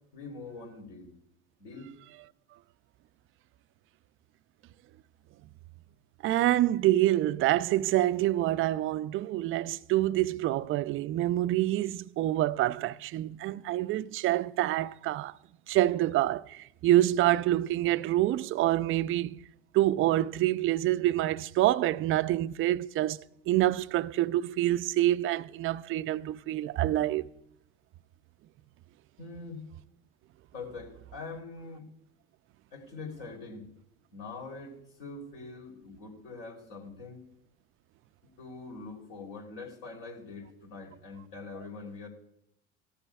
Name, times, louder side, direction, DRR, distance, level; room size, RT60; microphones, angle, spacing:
voice 1, 0.1-1.1 1.6-1.9 29.2-29.7 30.5-31.9 32.7-33.7 34.1-37.2 38.4-42.1, left 3 dB, 60° left, 3.3 m, -43 dB
voice 2, 6.2-15.3 15.7-19.4 19.7-27.3, right 14 dB, 35° right, 0.4 m, -27 dB
18.0 x 13.5 x 2.3 m
hypercardioid pair, 80°, 37 cm